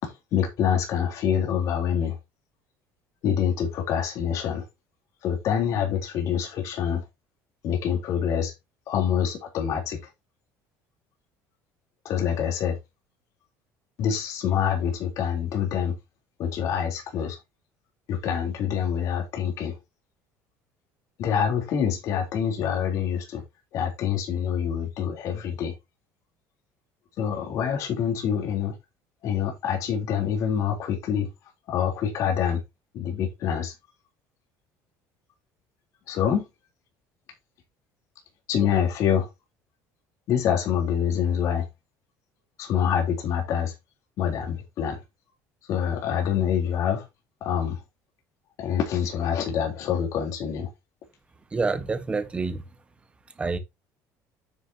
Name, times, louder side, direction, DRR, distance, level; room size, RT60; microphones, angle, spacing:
voice 1, 0.0-2.2 3.2-4.6 5.2-7.0 7.6-8.5 8.9-10.0 12.0-12.8 14.0-16.0 16.4-17.4 18.1-19.8 21.2-23.4 23.7-25.7 27.2-28.7 29.2-31.3 31.7-32.6 32.9-33.7 36.1-36.5 38.5-39.3 40.3-41.7 42.6-43.7 44.2-45.0 45.7-47.0 47.4-47.8 48.6-50.7, left 8 dB, 55° left, 3.5 m, -26 dB
voice 2, 51.5-52.6 53.4-53.6, right 4 dB, 15° right, 1.3 m, -27 dB
9.8 x 6.6 x 2.9 m
cardioid pair, 145°, 7 cm